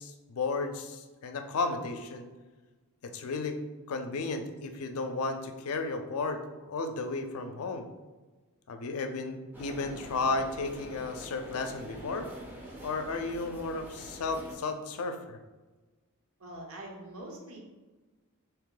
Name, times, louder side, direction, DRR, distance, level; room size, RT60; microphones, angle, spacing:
voice 1, 0.0-2.3 3.0-3.6 3.9-7.9 8.7-12.3 12.8-15.4, left 3 dB, 75° left, 7 dB, 0.4 m, -34 dB
sound 1, 9.5-14.5, right 1 dB, 10° right, 0.5 m, -45 dB
voice 2, 16.4-17.6, right 1 dB, 65° right, 0 dB, 0.9 m, -44 dB
3.6 x 2.9 x 3.8 m, 1.2 s
head